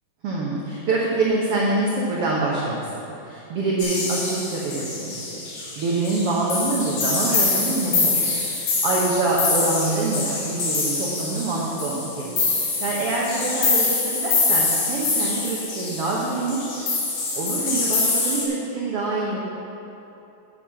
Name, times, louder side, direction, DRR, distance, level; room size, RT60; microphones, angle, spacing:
voice 1, 0.2-8.3 8.6-12.3 12.6-16.9 17.3-19.4, right 2 dB, 65° right, -4 dB, 1.4 m, -25 dB
sound 1, 3.8-18.4, left 3 dB, 70° left, 3.5 m, -25 dB
8.7 x 8.5 x 5.8 m, 2.9 s
omnidirectional pair, 4.1 m